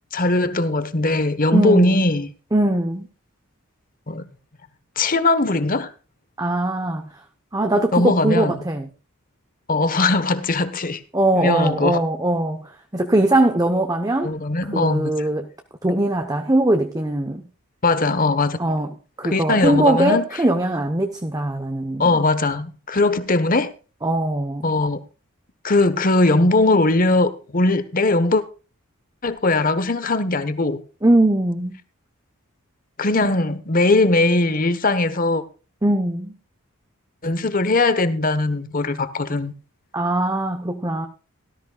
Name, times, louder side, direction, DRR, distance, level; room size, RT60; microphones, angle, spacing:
voice 1, 0.1-2.3 4.1-4.3 5.0-5.9 7.9-8.6 9.7-11.0 11.3-12.0 14.2-15.3 17.8-18.6 19.2-20.2 22.0-23.7 24.6-25.0 25.6-28.4 29.2-30.8 33.0-35.4 37.2-39.5, left 2 dB, 40° left, 1.2 m, -20 dB
voice 2, 1.5-2.1 2.5-3.1 6.4-7.1 7.5-8.9 11.1-14.3 14.7-15.5 15.8-17.4 18.6-22.2 24.0-24.8 31.0-31.8 35.8-36.3 39.9-41.1, right 1 dB, 15° right, 0.9 m, -21 dB
17.5 x 13.5 x 2.4 m
head